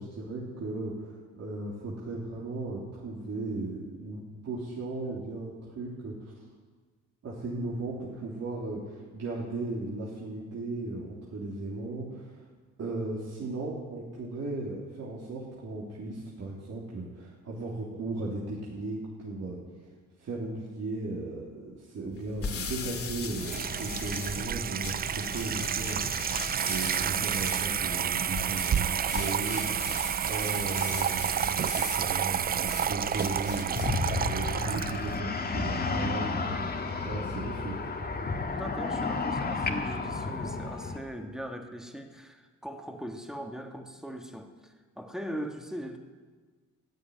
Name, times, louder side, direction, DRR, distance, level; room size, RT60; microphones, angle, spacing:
voice 1, 0.0-6.4 7.2-12.4 12.8-19.6 20.2-37.7, right 2 dB, 55° right, -5 dB, 3.3 m, -36 dB
sound 1, 22.1-34.0, left 5 dB, 50° left, 2.2 m, -40 dB
Water tap faucet / Sink (filling or washing), 23.0-35.2, right 8 dB, 30° right, 0.4 m, -30 dB
sound 2, 33.8-41.0, left 4 dB, 30° left, 1.8 m, -32 dB
voice 2, 38.5-46.0, equal, ahead, 4 dB, 1.7 m, -40 dB
14.5 x 9.8 x 9.4 m, 1.4 s
cardioid pair, 90°, 30 cm